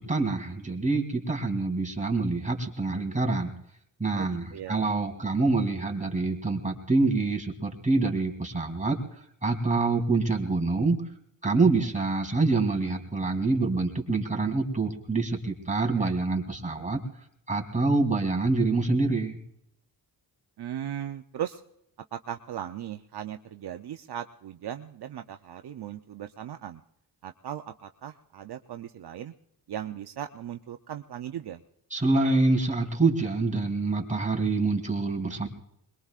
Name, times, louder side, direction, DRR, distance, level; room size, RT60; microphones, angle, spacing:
voice 1, 0.0-3.5 4.0-9.0 9.4-11.0 11.4-17.0 17.5-19.4 31.9-35.5, right 3 dB, 15° right, 2 dB, 3.1 m, -26 dB
voice 2, 4.1-4.9 16.0-16.1 20.6-21.6 22.1-26.8 27.2-29.3 29.7-31.6, right 10 dB, 65° right, 7 dB, 0.7 m, -38 dB
22.5 x 21.5 x 2.5 m, 0.73 s
cardioid pair, 75°, 42 cm